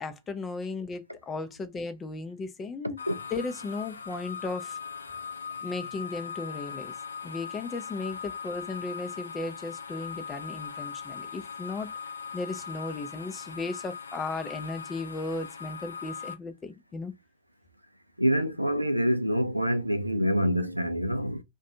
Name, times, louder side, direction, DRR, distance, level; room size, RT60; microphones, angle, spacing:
voice 1, 0.0-3.0 3.3-4.8 5.6-6.9 7.2-11.9 12.3-17.1, left 3 dB, 20° left, 0.5 m, -36 dB
sound 1, 3.0-16.3, left 6 dB, 75° left, 0.5 m, -40 dB
voice 2, 18.2-21.4, equal, 90° right, 0.4 m, -26 dB
2.5 x 2.2 x 2.7 m
figure-of-eight pair, 90°, 0 cm